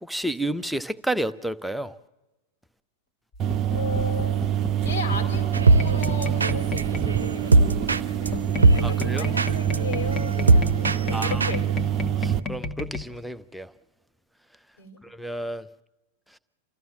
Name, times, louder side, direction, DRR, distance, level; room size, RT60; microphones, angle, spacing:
voice 1, 0.0-2.0 8.8-9.3 11.1-11.4 12.2-13.7 15.0-15.7 16.3-16.4, right 1 dB, ahead, 0.8 m, -31 dB
sound 1, 3.3-7.2 8.3-13.0, left 3 dB, 25° left, 1.5 m, -34 dB
sound 2, 3.4-12.4, right 10 dB, 30° right, 0.8 m, -26 dB
voice 2, 3.7-4.3 4.8-8.4 8.9-11.7 14.8-15.0, left 4 dB, 65° left, 4.1 m, -35 dB
sound 3, 5.5-11.6, right 3 dB, 75° right, 0.7 m, -22 dB
29.5 x 14.0 x 7.4 m
figure-of-eight pair, 90°, 0 cm